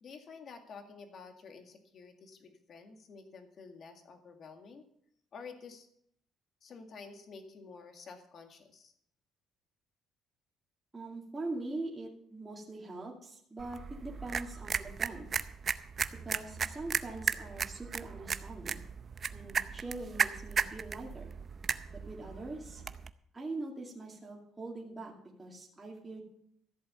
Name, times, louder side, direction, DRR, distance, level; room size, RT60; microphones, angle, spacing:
voice 1, 0.0-4.9 5.3-5.9 6.6-8.9, left 5 dB, 45° left, 5 dB, 2.0 m, -50 dB
voice 2, 10.9-15.3 16.2-18.8 19.3-21.3 22.1-22.8 23.3-25.1 25.4-26.2, right 2 dB, 15° right, -2 dB, 2.4 m, -42 dB
sound 1, 13.6-23.1, right 6 dB, 35° right, 0.6 m, -36 dB
14.0 x 8.0 x 6.9 m, 0.69 s
cardioid pair, 135°, 0 cm